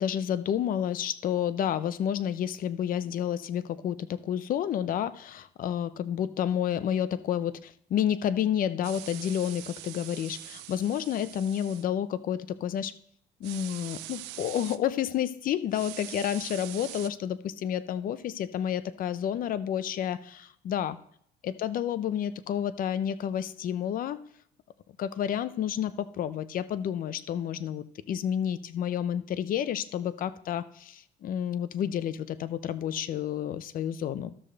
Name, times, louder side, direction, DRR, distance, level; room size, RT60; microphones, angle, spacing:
voice 1, 0.0-12.9 13.4-20.2 20.6-21.0 21.4-24.2 25.0-34.3, left 9 dB, 55° left, 14 dB, 0.6 m, -30 dB
sound 1, 8.8-11.8 13.4-14.8 15.7-17.1, right 16 dB, 90° right, 0.4 m, -43 dB
13.0 x 6.5 x 3.3 m, 0.67 s
cardioid pair, 110°, 17 cm